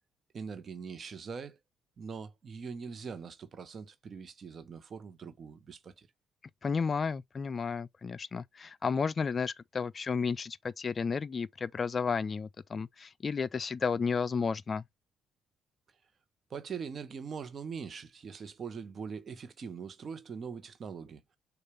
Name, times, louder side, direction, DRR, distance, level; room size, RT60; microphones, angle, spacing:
voice 1, 0.3-1.6 2.0-6.1 16.5-21.2, right 6 dB, 50° right, 0.8 m, -42 dB
voice 2, 6.6-14.8, left 5 dB, 40° left, 0.3 m, -32 dB
6.5 x 2.4 x 3.2 m
supercardioid pair, 75°, 0 cm